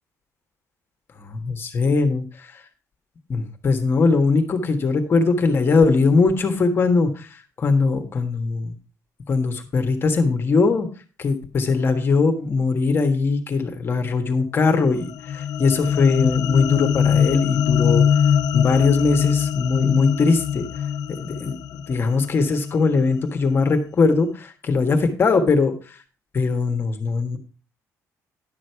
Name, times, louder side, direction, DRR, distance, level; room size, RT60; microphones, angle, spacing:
voice 1, 1.2-2.5 3.3-8.7 9.3-10.9 11.2-18.0 18.5-20.7 21.1-21.6 21.9-26.0 26.3-27.4, left 4 dB, 35° left, 6 dB, 1.5 m, -20 dB
sound 1, 14.8-23.3, left 8 dB, 75° left, 0.8 m, -22 dB
11.0 x 6.4 x 4.6 m, 0.35 s
cardioid pair, 130°, 6 cm